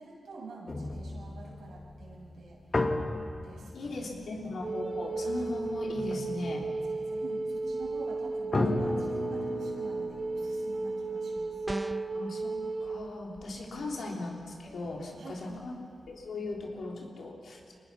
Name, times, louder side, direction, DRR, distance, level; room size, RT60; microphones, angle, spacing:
voice 1, 0.0-2.6 3.4-4.5 6.8-11.7 13.7-14.0 15.2-15.7, right 3 dB, 85° right, -4 dB, 7.3 m, -47 dB
sound 1, 0.7-14.0 14.4-15.7 16.0-16.3, left 2 dB, 40° left, 1.8 m, -37 dB
voice 2, 3.7-6.7 12.1-12.5 12.8-15.7 16.1-17.7, left 2 dB, 75° left, -1 dB, 3.8 m, -38 dB
Wind instrument woodwind instrument, 4.6-13.1, right 3 dB, 50° right, 2.5 m, -34 dB
sound 2, 11.7-12.2, right 1 dB, 15° right, 0.8 m, -36 dB
25.5 x 19.5 x 5.8 m, 2.6 s
cardioid pair, 55°, 0 cm